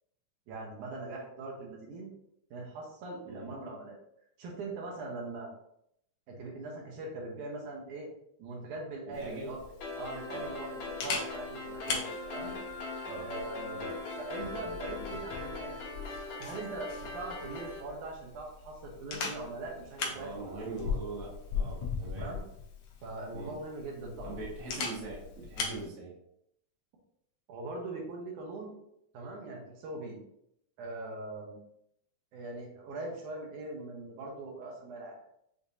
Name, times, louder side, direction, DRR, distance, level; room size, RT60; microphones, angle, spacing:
voice 1, 0.5-2.1 2.5-4.0 4.4-5.5 6.3-8.1 8.4-9.6 10.0-12.6 13.1-15.8 16.4-20.6 22.1-22.4 23.0-24.4 25.6-25.7 27.5-28.7 29.1-30.2 30.8-31.6 32.3-35.2, right 2 dB, 80° right, -1 dB, 2.4 m, -41 dB
Camera, 9.1-25.8, left 5 dB, 90° left, 1.2 m, -40 dB
voice 2, 9.1-9.5 10.3-10.5 13.0-13.3 13.7-13.9 20.1-22.3 23.3-23.5 24.2-26.1, right 3 dB, 60° right, -4 dB, 0.9 m, -42 dB
sound 1, 9.8-17.8, left 3 dB, 75° left, 2.1 m, -40 dB
6.5 x 2.6 x 2.7 m, 0.75 s
omnidirectional pair, 3.5 m